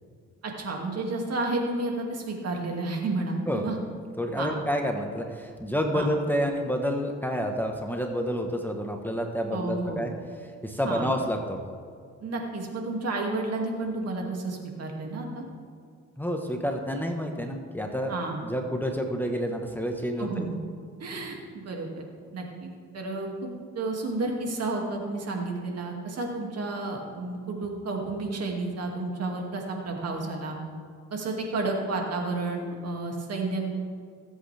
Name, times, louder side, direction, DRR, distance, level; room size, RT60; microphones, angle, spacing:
voice 1, 0.4-3.8 4.4-4.5 5.9-6.1 9.5-10.0 10.8-11.2 12.2-15.4 18.1-18.4 20.2-20.5 21.0-22.1 22.3-23.5 23.7-30.6 31.1-33.6, right 2 dB, 55° right, 1 dB, 2.4 m, -31 dB
voice 2, 4.2-10.1 10.4-11.6 16.2-18.1 18.4-20.5, equal, 5° left, 2 dB, 1.2 m, -29 dB
20.5 x 8.1 x 3.4 m, 2.2 s
cardioid pair, 90°, 30 cm